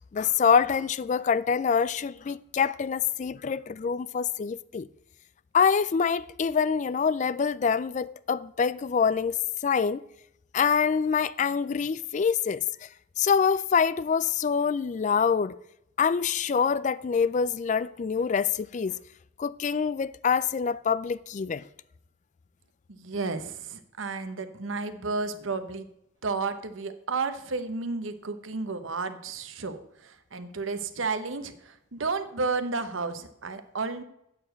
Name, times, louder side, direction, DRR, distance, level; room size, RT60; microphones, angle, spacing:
voice 1, 0.1-4.9 5.5-9.4 9.6-10.0 10.5-12.9 13.2-15.6 16.0-19.0 19.4-21.6, left 6 dB, 40° left, 0.3 m, -25 dB
voice 2, 22.9-25.9 26.2-34.0, right 4 dB, 85° right, 1.0 m, -32 dB
8.4 x 7.0 x 7.8 m
head